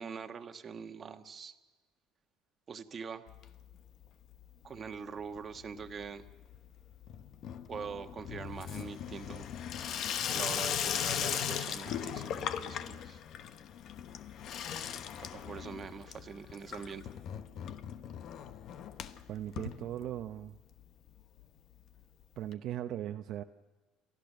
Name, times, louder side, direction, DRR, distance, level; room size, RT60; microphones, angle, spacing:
voice 1, 0.0-1.5 2.7-3.2 4.6-6.3 7.7-9.5 10.3-13.2 15.2-17.1, right 6 dB, 35° right, 7 dB, 1.3 m, -43 dB
Water tap faucet / Sink (filling or washing), 3.3-4.1 4.3-4.9 5.2-20.5 20.8-20.9 21.1-21.2 21.4-21.5 22.5-22.6, left 9 dB, 55° left, 1.0 m, -39 dB
voice 2, 19.3-20.6 22.4-23.4, right 12 dB, 60° right, 5 dB, 0.8 m, -38 dB
30.0 x 13.5 x 6.7 m, 1.2 s
cardioid pair, 115°, 0 cm